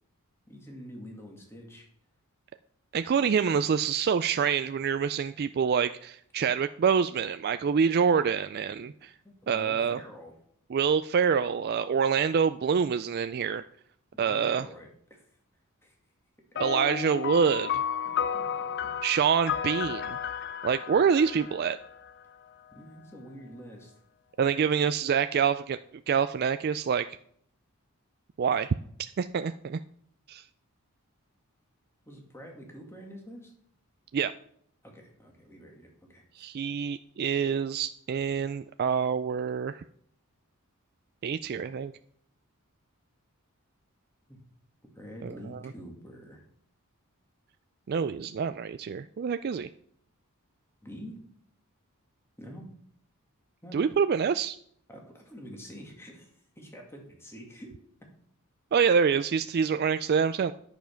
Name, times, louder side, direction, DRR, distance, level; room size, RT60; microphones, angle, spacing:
voice 1, 0.5-1.9 8.8-10.3 14.1-15.2 15.8-16.0 18.1-18.9 22.7-23.9 32.1-33.5 34.8-36.5 44.3-44.4 44.9-46.4 50.8-51.2 52.4-52.7 53.6-53.8 54.9-57.8, equal, 10° left, 0 dB, 2.1 m, -47 dB
voice 2, 2.9-9.1 9.5-10.0 10.7-13.6 14.2-14.7 16.6-17.8 19.0-20.2 20.6-21.8 24.4-25.8 26.1-27.1 28.4-29.8 30.3-30.4 34.1-34.3 36.4-39.8 41.2-41.9 45.2-45.6 47.9-49.7 53.7-54.6 58.7-60.5, right 6 dB, 45° right, 10 dB, 0.3 m, -26 dB
sound 1, 16.6-22.3, left 8 dB, 50° left, 0.5 m, -33 dB
10.5 x 7.0 x 5.8 m, 0.65 s
head